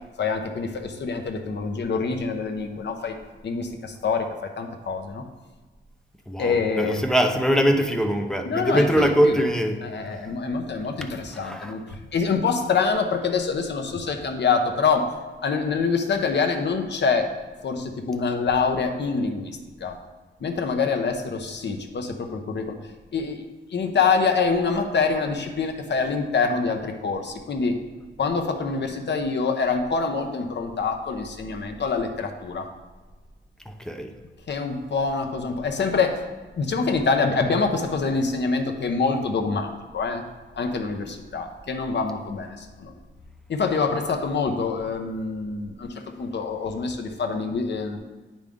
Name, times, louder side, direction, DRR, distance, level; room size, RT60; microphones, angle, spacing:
voice 1, 0.2-3.1 3.4-5.2 6.4-7.0 8.4-9.4 9.8-15.1 15.4-17.3 17.6-20.0 20.4-22.8 23.1-23.4 23.7-27.8 28.2-32.7 34.5-36.2 36.6-40.2 40.6-42.9 43.5-48.0, left 4 dB, 60° left, 5 dB, 0.8 m, -25 dB
voice 2, 6.3-9.8 11.3-11.7 33.7-34.1, equal, 5° left, 4 dB, 0.6 m, -22 dB
8.9 x 5.2 x 3.6 m, 1.3 s
wide cardioid pair, 155°, 21 cm